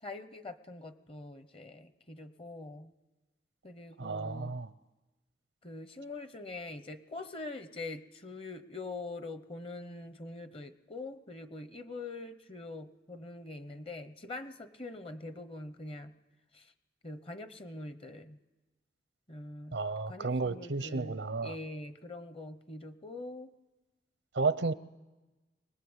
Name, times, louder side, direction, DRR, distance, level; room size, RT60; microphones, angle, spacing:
voice 1, 0.0-2.9 3.6-4.6 5.6-16.1 16.5-16.7 17.0-18.4 19.3-19.8 20.1-23.5, left 2 dB, 30° left, 0.9 m, -44 dB
voice 2, 4.0-4.7 19.7-21.5 24.3-24.7, right 4 dB, 85° right, 0.7 m, -32 dB
24.0 x 19.5 x 8.0 m
head